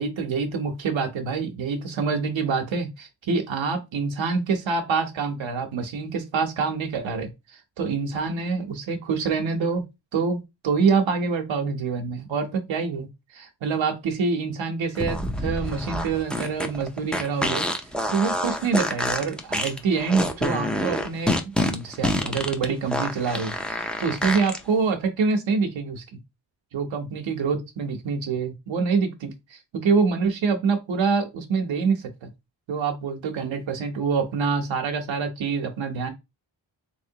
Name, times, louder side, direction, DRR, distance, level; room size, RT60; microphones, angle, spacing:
voice 1, 0.0-7.3 7.8-9.8 10.1-13.1 13.3-17.6 18.1-26.0 26.7-32.3 32.7-36.1, right 5 dB, 85° right, 0.8 m, -26 dB
sound 1, 14.9-24.6, left 1 dB, ahead, 0.4 m, -27 dB
3.6 x 3.1 x 2.7 m
wide cardioid pair, 125°, 45 cm